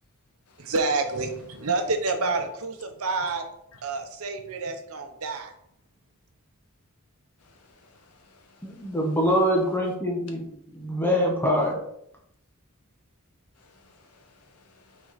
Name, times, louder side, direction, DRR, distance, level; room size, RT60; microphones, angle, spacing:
voice 1, 0.6-3.4 3.8-5.5, right 3 dB, 75° right, 5 dB, 0.9 m, -28 dB
voice 2, 7.4-9.0 13.6-15.1, left 3 dB, 90° left, 4 dB, 1.2 m, -59 dB
voice 3, 8.6-11.9, equal, 10° left, -1 dB, 1.0 m, -24 dB
5.6 x 4.3 x 4.1 m, 0.74 s
head